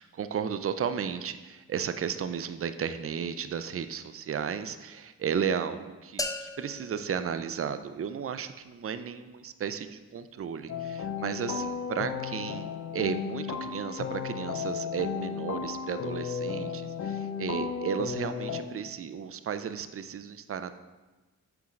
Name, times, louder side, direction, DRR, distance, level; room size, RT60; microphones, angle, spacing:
voice 1, 0.0-20.8, right 7 dB, 40° right, 11 dB, 0.5 m, -34 dB
sound 1, 6.2-8.2, left 2 dB, 10° left, 0.5 m, -38 dB
sound 2, 10.7-18.6, left 6 dB, 50° left, 0.6 m, -34 dB
7.2 x 4.5 x 3.7 m, 1.2 s
cardioid pair, 45°, 35 cm